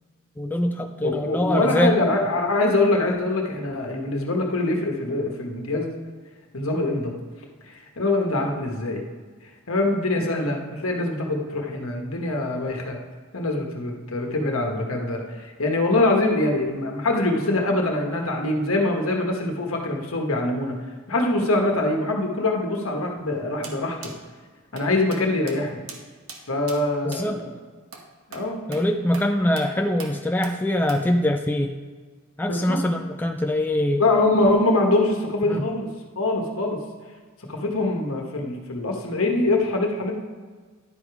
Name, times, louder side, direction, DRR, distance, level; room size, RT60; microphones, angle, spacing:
voice 1, 0.4-2.0 27.0-27.4 28.7-31.7 32.4-34.0 35.5-35.6, left 1 dB, 10° left, 4 dB, 0.3 m, -23 dB
voice 2, 1.0-5.9 6.5-7.2 7.6-9.0 9.4-13.0 13.3-20.8 21.1-24.1 24.7-25.8 26.5-27.6 28.3-28.6 32.4-32.8 34.0-36.8 37.4-40.2, left 2 dB, 75° left, 1 dB, 1.3 m, -24 dB
sound 1, 23.6-23.8 24.0-24.2 24.8-24.9 25.1-25.2 25.5-25.6 25.9-26.0 26.3-26.4 26.7-26.8 27.1-27.2 27.9-28.0 28.3-28.5 28.7-28.8 29.1-29.3 29.6-29.7 30.0-30.1 30.4-30.6 30.9-31.0, right 4 dB, 80° right, 1.1 m, -39 dB
10.5 x 5.0 x 4.7 m, 1.5 s
head